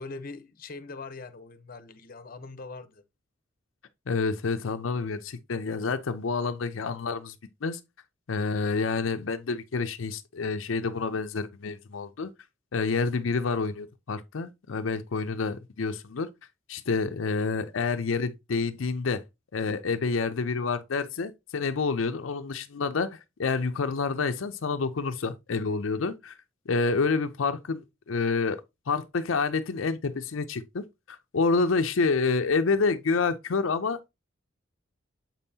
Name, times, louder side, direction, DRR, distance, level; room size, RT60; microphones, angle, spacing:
voice 1, 0.0-3.0, left 3 dB, 45° left, 0.8 m, -42 dB
voice 2, 4.1-7.3 7.6-7.8 8.3-12.3 12.7-16.3 16.7-19.2 19.5-26.4 26.7-28.6 28.9-34.1, left 4 dB, 80° left, 0.5 m, -28 dB
7.3 x 5.4 x 2.7 m
head